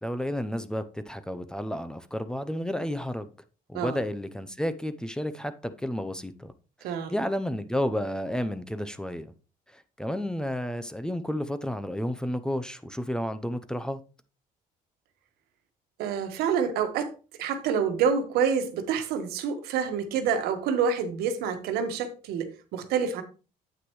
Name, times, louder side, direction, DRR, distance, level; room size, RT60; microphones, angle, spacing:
voice 1, 0.0-3.3 3.7-6.5 6.8-9.3 9.7-14.0, equal, 5° left, 0.7 m, -31 dB
voice 2, 16.0-17.1 17.4-23.2, right 6 dB, 85° right, 1.4 m, -27 dB
9.0 x 8.2 x 3.1 m
cardioid pair, 115°, 16 cm